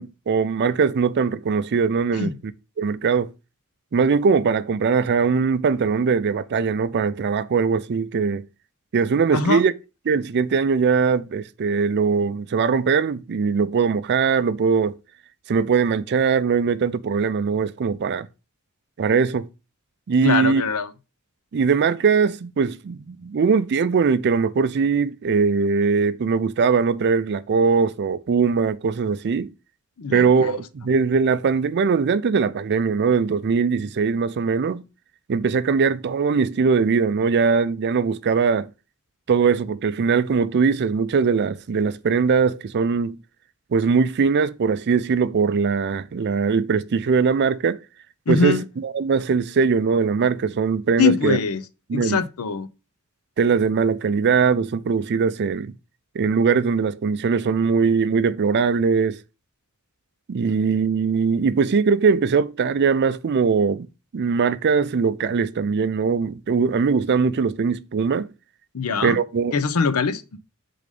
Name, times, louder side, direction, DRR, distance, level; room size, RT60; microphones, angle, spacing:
voice 1, 0.0-2.3 2.8-3.3 3.9-8.4 8.9-9.7 10.1-15.0 15.5-18.3 19.0-19.5 20.1-20.6 21.5-29.5 30.1-34.8 35.3-38.7 39.3-43.2 43.7-47.8 48.3-51.4 51.9-52.2 53.4-55.7 56.1-59.2 60.3-63.9 64.1-68.3 69.0-69.5, right 5 dB, 50° right, 0.4 m, -21 dB
voice 2, 20.2-20.9 30.0-30.6 48.3-48.6 51.0-51.6 51.9-52.7 68.7-69.2 69.5-70.4, left 5 dB, 85° left, 0.6 m, -22 dB
4.9 x 3.9 x 5.1 m
head